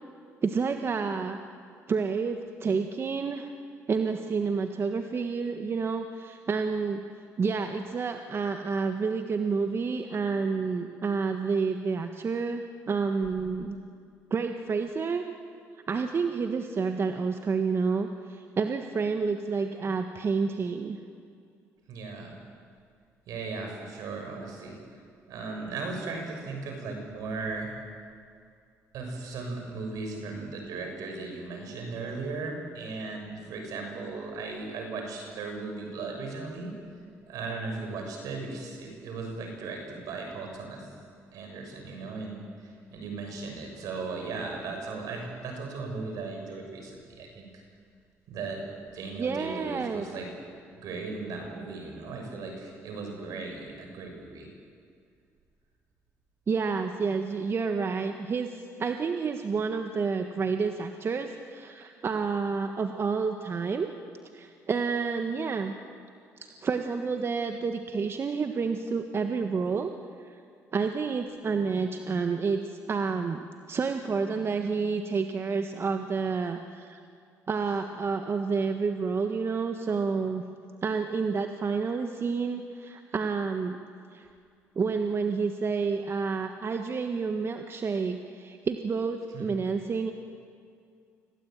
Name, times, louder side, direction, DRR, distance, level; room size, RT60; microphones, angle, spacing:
voice 1, 0.4-1.4 1.9-3.5 3.9-7.0 7.4-13.8 14.3-15.2 15.9-21.0 49.2-50.1 56.5-63.9 64.3-65.7 66.4-69.9 70.2-70.4 70.7-77.0 77.5-80.4 80.8-83.8 84.1-84.3 84.7-90.1, right 5 dB, 40° right, 6 dB, 1.5 m, -29 dB
voice 2, 21.9-22.4 23.3-24.8 25.3-27.7 28.9-36.7 37.3-40.9 41.3-47.6 48.3-48.6 48.9-50.3 50.7-54.5 89.3-89.5, right 3 dB, 75° right, 3 dB, 6.5 m, -37 dB
26.0 x 17.0 x 9.1 m, 2.3 s
supercardioid pair, 75°, 6 cm